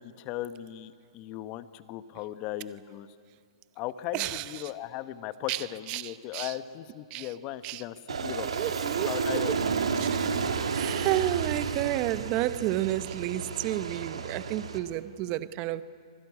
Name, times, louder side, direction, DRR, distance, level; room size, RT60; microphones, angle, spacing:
voice 1, 0.0-3.1 3.8-8.5 9.1-9.8, left 13 dB, 30° left, 1.0 m, -37 dB
voice 2, 4.1-4.7 5.5-6.6 7.1-7.3 7.6-7.8 8.3-9.1 9.3-9.7 10.0-10.4 10.7-15.8, right 15 dB, 30° right, 0.8 m, -31 dB
Aircraft, 8.1-14.8, right 5 dB, 85° right, 2.2 m, -31 dB
25.5 x 17.5 x 9.7 m
hypercardioid pair, 145°, 3 cm